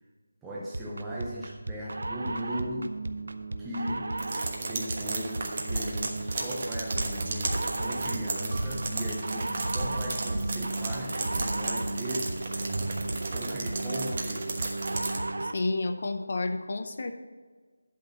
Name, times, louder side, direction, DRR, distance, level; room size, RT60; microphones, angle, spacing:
voice 1, 0.4-3.0 3.6-4.1 4.7-12.4 13.3-14.6, equal, 5° right, -7 dB, 0.6 m, -37 dB
sound 1, 0.7-15.7, right 2 dB, 65° right, 0.7 m, -35 dB
sound 2, 4.2-15.2, right 3 dB, 30° right, 1.1 m, -35 dB
sound 3, 5.7-5.8 6.4-6.5 6.9-9.3 9.6-10.7 11.3-11.5, right 1 dB, 45° right, 2.2 m, -35 dB
voice 2, 15.4-17.1, left 2 dB, 40° left, 7 dB, 0.7 m, -30 dB
11.5 x 4.2 x 7.1 m, 1.4 s
figure-of-eight pair, 175°, 0 cm